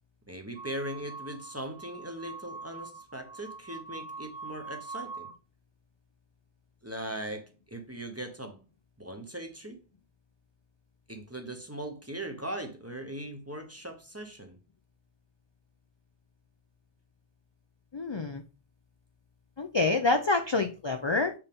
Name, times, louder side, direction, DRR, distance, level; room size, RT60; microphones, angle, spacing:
voice 1, 0.3-5.3 6.8-8.6 9.0-9.8 11.1-14.6, right 1 dB, 15° right, 0.8 m, -39 dB
sound 1, 0.6-5.4, right 4 dB, 70° right, 0.9 m, -44 dB
voice 2, 17.9-18.4 19.6-21.3, left 3 dB, 40° left, 0.4 m, -27 dB
6.5 x 4.6 x 3.6 m
omnidirectional pair, 1.2 m